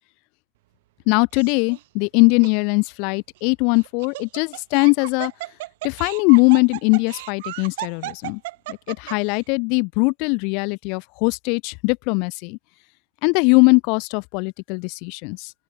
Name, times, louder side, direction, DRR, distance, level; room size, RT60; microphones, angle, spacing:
voice 1, 1.1-5.3 5.8-8.4 8.7-12.6 13.2-15.5, left 35 dB, 45° left, 0.3 m, -20 dB
Laughter, 1.3-1.8 2.4-2.5 3.8-9.4, right 19 dB, 50° right, 0.9 m, -34 dB
open air
figure-of-eight pair, 90°, 0 cm